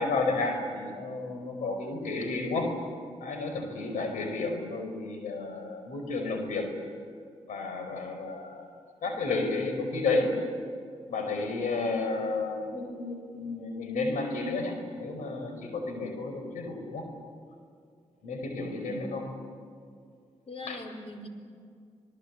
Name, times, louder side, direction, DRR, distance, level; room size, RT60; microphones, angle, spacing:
voice 1, 0.0-2.7 3.2-6.7 7.5-8.7 9.0-10.3 11.1-17.0 18.2-19.2 20.6-20.8, left 3 dB, 80° left, 6 dB, 5.1 m, -32 dB
voice 2, 18.8-19.2 20.5-21.3, left 1 dB, 50° left, 7 dB, 4.3 m, -41 dB
27.5 x 20.0 x 8.5 m, 2.3 s
supercardioid pair, 50°, 13 cm